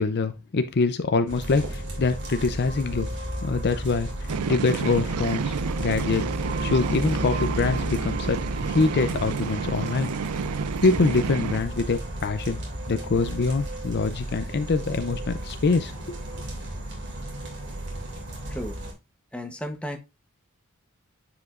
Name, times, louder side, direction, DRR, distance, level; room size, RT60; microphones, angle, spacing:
voice 1, 0.0-3.1 3.4-4.1 4.5-6.3 6.6-10.1 10.8-12.6 12.9-16.2, left 3 dB, 50° left, 0.5 m, -24 dB
sound 1, 1.3-18.9, right 1 dB, 55° right, 2.6 m, -34 dB
sound 2, 4.3-11.6, right 5 dB, 90° right, 0.5 m, -30 dB
voice 2, 19.3-20.0, equal, 5° left, 0.9 m, -33 dB
9.5 x 4.9 x 2.4 m
head